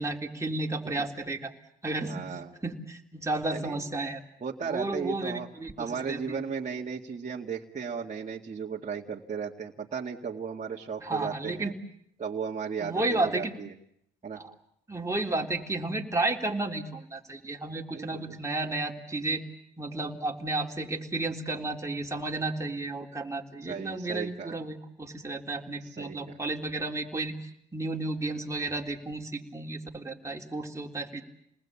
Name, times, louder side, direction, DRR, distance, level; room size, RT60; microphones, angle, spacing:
voice 1, 0.0-1.5 1.8-2.3 2.6-4.2 4.6-6.4 11.0-11.7 12.8-13.5 14.3-14.5 14.9-19.4 19.8-31.2, right 2 dB, 15° right, 1 dB, 3.5 m, -32 dB
voice 2, 2.1-2.5 3.5-3.8 4.4-5.5 5.8-11.7 12.2-13.7 14.2-14.4 17.9-18.4 23.6-24.6 25.8-26.4, right 6 dB, 35° right, -2 dB, 2.1 m, -35 dB
28.5 x 20.0 x 8.6 m, 0.73 s
cardioid pair, 90°, 20 cm